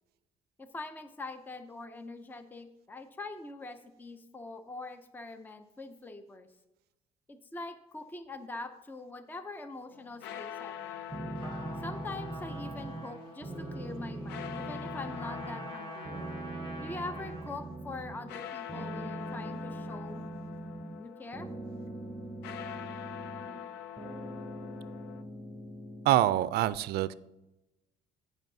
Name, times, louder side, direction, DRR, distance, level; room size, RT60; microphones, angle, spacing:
voice 1, 0.6-6.5 7.3-11.0 11.8-16.1 16.8-20.2 21.0-21.5, left 2 dB, 10° left, 9 dB, 0.5 m, -43 dB
sound 1, 9.9-25.2, left 10 dB, 85° left, 0.5 m, -45 dB
sound 2, 11.1-13.1 13.4-15.8 16.0-18.4 18.7-21.0 21.3-23.7 24.0-26.3, right 2 dB, 10° right, 0.9 m, -41 dB
Trumpet, 11.3-17.6, right 1 dB, 30° left, 1.9 m, -46 dB
voice 2, 26.1-27.1, right 13 dB, 70° right, 16 dB, 0.4 m, -25 dB
15.5 x 5.4 x 2.7 m, 0.97 s
cardioid pair, 110°, 17 cm